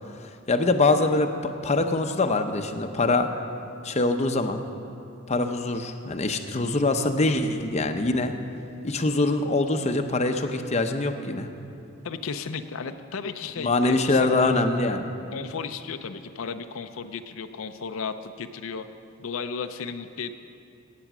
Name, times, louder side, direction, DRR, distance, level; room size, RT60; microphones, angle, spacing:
voice 1, 0.5-1.3 1.6-3.3 3.8-4.6 5.3-8.3 8.8-11.5 13.6-15.0, left 2 dB, 35° left, 6 dB, 0.7 m, -23 dB
voice 2, 12.0-14.6 15.3-18.9 19.2-20.3, left 5 dB, 80° left, 8 dB, 0.5 m, -34 dB
17.0 x 8.5 x 6.0 m, 2.6 s
head